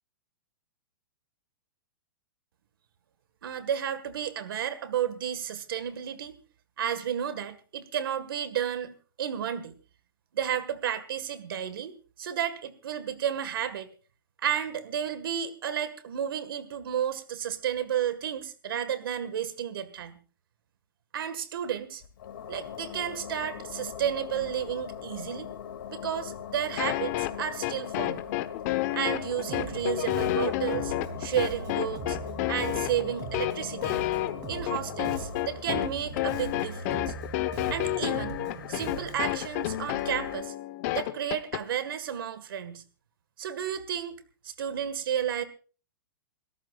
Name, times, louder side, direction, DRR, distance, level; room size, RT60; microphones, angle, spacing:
voice 1, 3.4-6.3 6.8-9.7 10.3-13.9 14.4-20.2 21.1-22.0 22.5-25.5 25.9-28.2 28.9-30.9 31.2-32.2 32.5-34.0 34.5-37.1 37.7-38.4 38.7-40.5 40.9-42.8 43.4-44.1 44.4-45.4, right 9 dB, 75° right, 12 dB, 1.8 m, -32 dB
sound 1, 22.0-40.4, left 8 dB, 70° left, 2.5 m, -41 dB
sound 2, 26.8-41.6, left 16 dB, 40° left, 1.1 m, -30 dB
Bass guitar, 29.5-39.4, right 6 dB, 30° right, 3.1 m, -41 dB
28.0 x 13.5 x 2.5 m, 0.37 s
hypercardioid pair, 150°, 12 cm